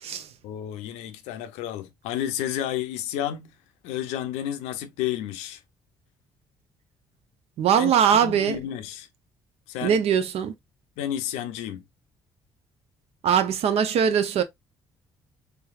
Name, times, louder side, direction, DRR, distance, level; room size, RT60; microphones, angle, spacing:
voice 1, 0.4-3.5 3.8-5.6 7.7-7.9 8.2-9.1 9.7-10.0 11.0-11.8, left 11 dB, 85° left, 0.5 m, -31 dB
voice 2, 7.6-8.6 9.8-10.5 13.2-14.4, right 8 dB, 65° right, 0.6 m, -21 dB
3.4 x 3.2 x 2.3 m
supercardioid pair, 65°, 11 cm